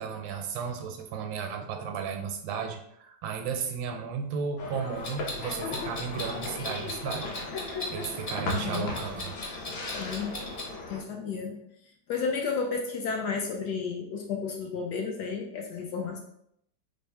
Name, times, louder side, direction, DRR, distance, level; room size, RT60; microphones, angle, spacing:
voice 1, 0.0-7.4 7.9-9.4, right 6 dB, 80° right, 5 dB, 1.3 m, -34 dB
sound 1, 4.6-11.0, left 2 dB, 85° left, 1.5 m, -37 dB
Clock, 5.0-10.7, left 2 dB, 40° left, 0.8 m, -38 dB
voice 2, 8.5-8.9 9.9-10.4 10.9-11.6 12.1-16.2, left 5 dB, 70° left, 1 dB, 1.0 m, -32 dB
3.5 x 2.1 x 4.3 m, 0.73 s
omnidirectional pair, 2.1 m